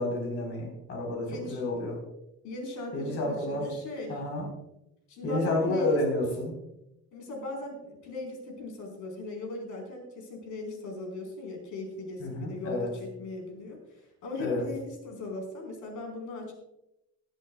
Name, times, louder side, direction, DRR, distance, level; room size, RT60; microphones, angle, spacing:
voice 1, 0.0-2.0 2.9-3.6 4.1-4.5 5.2-6.5 12.2-12.9 14.4-14.7, left 2 dB, 55° left, 0 dB, 4.0 m, -30 dB
voice 2, 1.2-1.6 2.4-4.2 5.1-5.9 7.1-13.8 14.2-16.5, left 2 dB, 85° left, 1 dB, 4.4 m, -38 dB
18.0 x 12.5 x 2.3 m, 0.87 s
cardioid pair, 160°, 29 cm